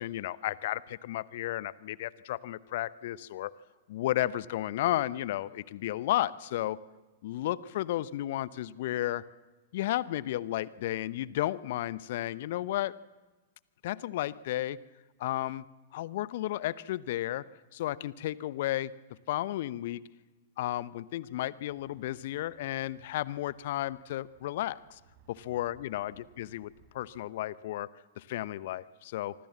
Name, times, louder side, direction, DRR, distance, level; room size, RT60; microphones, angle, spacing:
voice 1, 0.0-3.5 3.9-6.8 7.2-9.2 9.7-12.9 13.8-14.8 15.2-15.6 15.9-17.4 17.7-18.9 19.3-20.0 20.6-25.0 25.3-27.9 28.2-29.3, left 14 dB, 55° left, 18 dB, 0.9 m, -33 dB
sound 1, 21.7-27.2, right 6 dB, 45° right, 5.4 m, -64 dB
25.5 x 24.5 x 7.4 m, 1.2 s
figure-of-eight pair, 100°, 0 cm